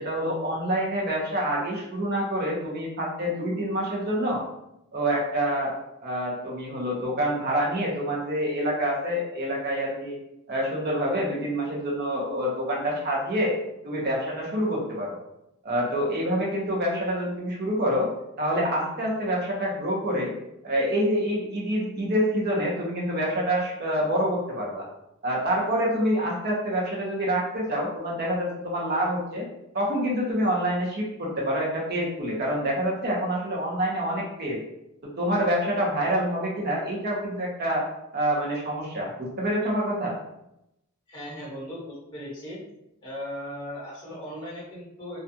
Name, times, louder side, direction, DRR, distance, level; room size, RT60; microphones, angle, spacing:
voice 1, 0.0-4.4 4.9-5.7 6.0-10.2 10.5-13.5 13.8-15.2 15.6-18.1 18.4-20.3 20.6-24.8 25.2-29.5 29.7-34.6 35.2-37.9 38.1-40.1, equal, 50° right, -3 dB, 0.7 m, -27 dB
voice 2, 41.1-42.6 43.0-45.2, equal, 20° left, -6 dB, 1.0 m, -37 dB
2.4 x 2.3 x 2.7 m, 0.85 s
head